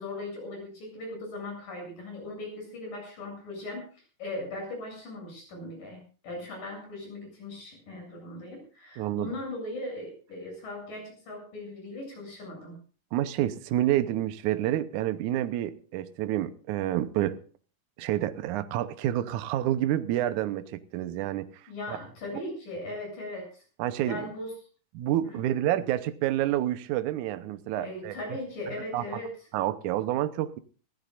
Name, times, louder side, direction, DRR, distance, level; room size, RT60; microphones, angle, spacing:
voice 1, 0.0-3.8 4.2-12.8 21.7-23.6 24.0-24.5 25.2-25.6 27.7-29.3, left 2 dB, 85° left, 9.7 m, -39 dB
voice 2, 9.0-9.3 13.1-17.4 18.0-21.5 21.9-22.0 23.8-24.3 24.9-28.2 28.9-29.2 29.5-30.6, right 13 dB, 75° right, 2.3 m, -28 dB
24.5 x 15.5 x 2.6 m
omnidirectional pair, 3.8 m